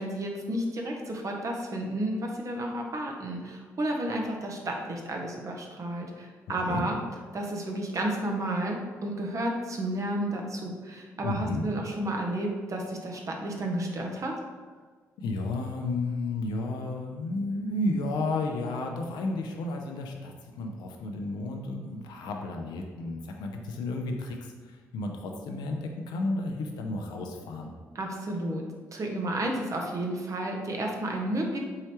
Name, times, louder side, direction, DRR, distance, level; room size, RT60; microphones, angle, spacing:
voice 1, 0.0-7.0 7.3-14.4 27.9-28.6 28.9-31.6, right 1 dB, 45° right, 1 dB, 0.8 m, -32 dB
voice 2, 11.2-11.6 15.2-24.4 24.7-27.7, left 2 dB, 70° left, 3 dB, 0.5 m, -32 dB
4.7 x 3.1 x 3.0 m, 1.5 s
hypercardioid pair, 45°, 8 cm